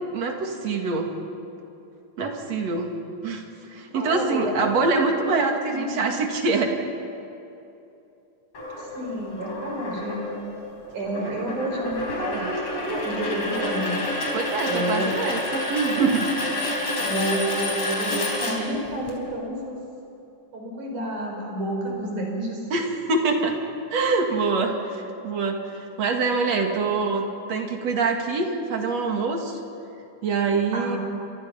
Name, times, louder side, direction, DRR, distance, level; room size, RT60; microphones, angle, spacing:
voice 1, 0.1-1.1 2.2-2.9 3.2-3.4 3.7-6.7 11.1-11.5 12.3-12.5 14.3-16.3 22.7-23.6 23.9-29.6 30.2-31.0, right 4 dB, 60° right, 2 dB, 3.3 m, -25 dB
voice 2, 3.9-5.9 8.9-10.2 10.9-14.0 14.7-15.1 17.0-19.8 20.5-22.6 30.7-31.0, right 1 dB, 80° right, 0 dB, 6.6 m, -29 dB
sound 1, 8.5-19.1, left 1 dB, 55° left, 5.4 m, -29 dB
29.5 x 26.0 x 5.8 m, 2.8 s
omnidirectional pair, 3.5 m